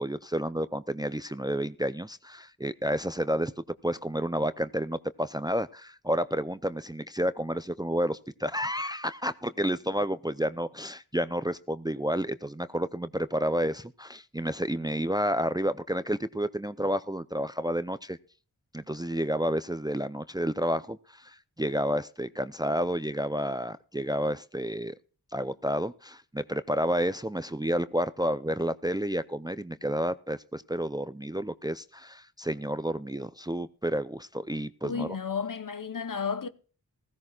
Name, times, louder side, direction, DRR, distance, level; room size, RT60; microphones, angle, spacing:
voice 1, 0.0-3.5 3.8-18.2 18.7-25.0 25.3-35.1, equal, 10° right, 0.5 m, -30 dB
voice 2, 34.8-36.5, left 6 dB, 55° left, 1.0 m, -32 dB
16.0 x 15.5 x 2.4 m
cardioid pair, 40°, 39 cm